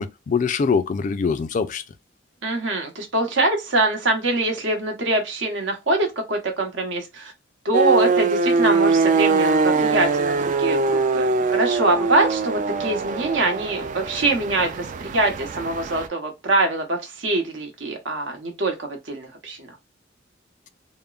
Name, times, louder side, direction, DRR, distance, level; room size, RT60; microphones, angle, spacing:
voice 1, 0.0-1.8, left 5 dB, 40° left, 0.3 m, -23 dB
voice 2, 2.4-7.3 7.6-19.7, right 2 dB, 70° right, 1.0 m, -24 dB
sound 1, 7.7-16.1, right 4 dB, 40° right, 0.3 m, -22 dB
3.5 x 2.0 x 2.3 m
head